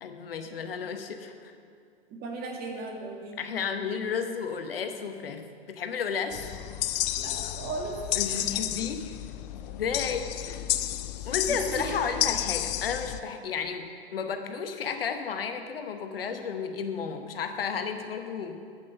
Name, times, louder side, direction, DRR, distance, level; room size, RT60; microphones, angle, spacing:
voice 1, 0.0-1.5 3.4-6.4 8.2-9.2 9.5-10.7 11.2-18.6, left 6 dB, 70° left, 7 dB, 1.0 m, -33 dB
voice 2, 2.1-3.4 7.1-8.0 8.3-8.5 11.2-12.4, right 3 dB, 30° right, 0 dB, 2.0 m, -37 dB
sound 1, 6.3-13.2, left 14 dB, 45° left, 0.5 m, -31 dB
8.5 x 8.4 x 6.6 m, 2.2 s
figure-of-eight pair, 95°, 30 cm